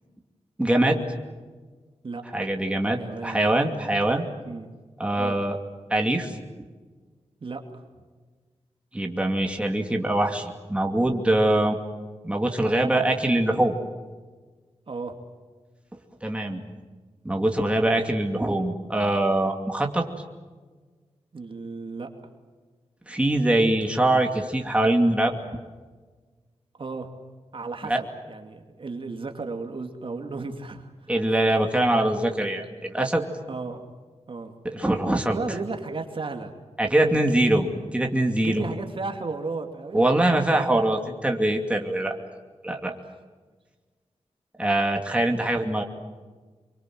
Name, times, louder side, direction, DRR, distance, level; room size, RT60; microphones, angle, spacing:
voice 1, 0.6-1.0 2.3-4.3 5.0-5.6 5.9-6.4 8.9-11.8 12.2-13.7 16.2-16.6 17.2-20.1 23.1-25.3 27.8-28.0 31.1-33.2 34.6-35.4 36.8-38.6 39.9-42.2 42.6-42.9 44.6-45.8, right 1 dB, 10° right, 2 dB, 2.5 m, -23 dB
voice 2, 2.9-3.4 4.4-4.7 5.2-5.4 7.4-7.8 14.9-15.1 21.3-22.1 26.8-27.1 27.5-31.1 33.5-33.8 34.3-34.5 35.3-36.5 37.0-37.6 38.3-40.7 42.8-43.0, right 3 dB, 50° right, 5 dB, 2.5 m, -34 dB
27.0 x 24.0 x 7.7 m, 1.4 s
wide cardioid pair, 120°, 11 cm